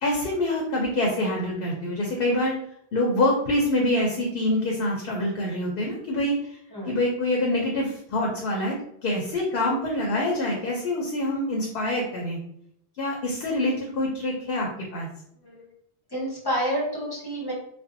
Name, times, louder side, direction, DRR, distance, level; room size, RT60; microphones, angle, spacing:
voice 1, 0.0-2.5 2.9-6.6 6.9-8.7 9.0-12.4 13.0-15.1, left 1 dB, 65° left, -1 dB, 0.7 m, -25 dB
voice 2, 16.1-17.5, equal, 25° left, -5 dB, 0.7 m, -29 dB
2.5 x 2.1 x 2.5 m, 0.71 s
omnidirectional pair, 1.1 m